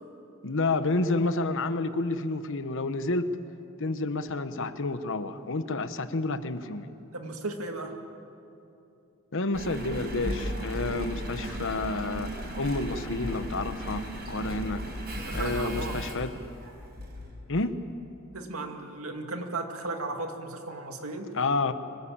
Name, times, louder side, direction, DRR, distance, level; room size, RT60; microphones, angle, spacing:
voice 1, 0.4-3.3 3.8-6.9 9.3-14.8 15.3-16.3 17.5-17.8 21.3-21.7, left 2 dB, 65° left, 11 dB, 1.1 m, -30 dB
voice 2, 7.1-8.0 15.3-16.0 18.3-21.3, right 2 dB, 85° right, 4 dB, 2.2 m, -35 dB
Engine, 9.5-17.4 18.0-18.1, equal, 50° right, 5.5 m, -35 dB
24.5 x 19.0 x 8.8 m, 2.7 s
head